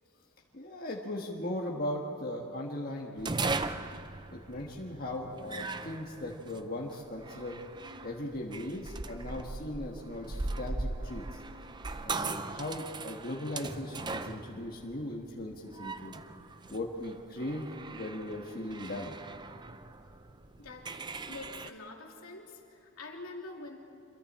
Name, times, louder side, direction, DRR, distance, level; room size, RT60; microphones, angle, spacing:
voice 1, 0.5-3.6 4.3-7.6 8.0-11.4 12.0-16.2 16.7-19.2, left 1 dB, 40° left, -2 dB, 1.5 m, -38 dB
sound 1, 3.2-21.7, right 3 dB, 20° right, 0.5 m, -39 dB
voice 2, 20.6-20.9 21.3-23.8, left 3 dB, 80° left, 0 dB, 2.8 m, -46 dB
27.0 x 22.5 x 4.3 m, 2.7 s
head